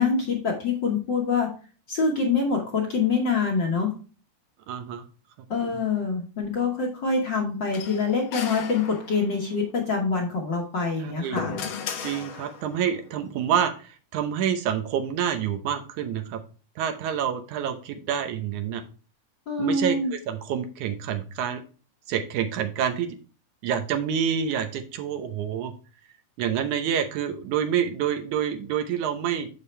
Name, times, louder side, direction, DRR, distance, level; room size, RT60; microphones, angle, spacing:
voice 1, 0.0-1.5 1.9-3.9 5.5-11.6 19.5-20.1, left 4 dB, 45° left, 0 dB, 1.6 m, -25 dB
voice 2, 4.7-5.1 5.6-5.8 11.0-11.4 12.0-16.4 16.8-18.8 19.6-21.6 22.1-23.2 23.6-25.7 26.4-29.5, right 8 dB, 75° right, 6 dB, 2.2 m, -27 dB
sound 1, 7.7-9.5 10.8-12.9, left 7 dB, 70° left, 1.2 m, -36 dB
7.1 x 6.6 x 3.2 m, 0.37 s
omnidirectional pair, 3.6 m